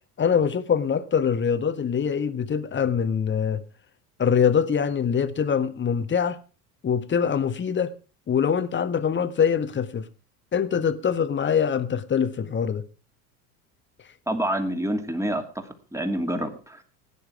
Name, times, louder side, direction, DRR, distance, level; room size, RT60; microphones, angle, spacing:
voice 1, 0.2-3.6 4.2-6.4 6.8-7.9 8.3-10.1 10.5-12.8, left 7 dB, 25° left, 1.4 m, -23 dB
voice 2, 14.3-16.9, right 1 dB, 5° right, 2.7 m, -28 dB
17.0 x 9.9 x 4.8 m
hypercardioid pair, 75°, 47 cm